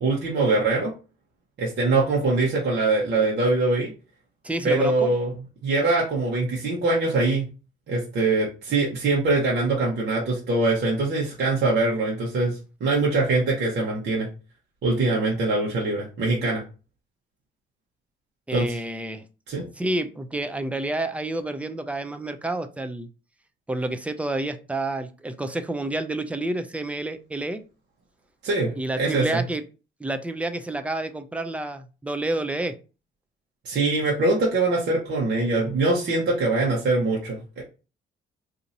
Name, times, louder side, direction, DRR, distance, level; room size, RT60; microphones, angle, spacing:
voice 1, 0.0-0.9 1.6-3.9 4.6-5.3 5.6-7.4 7.9-14.3 14.8-16.6 18.5-18.7 19.5-19.6 28.4-29.4 33.6-37.6, right 3 dB, 60° right, -4 dB, 1.1 m, -23 dB
voice 2, 4.4-5.1 18.5-19.2 19.8-23.1 23.7-27.6 28.8-29.6 30.0-32.7, right 2 dB, 5° right, 8 dB, 0.4 m, -29 dB
2.8 x 2.6 x 4.0 m, 0.33 s
cardioid pair, 90°, 20 cm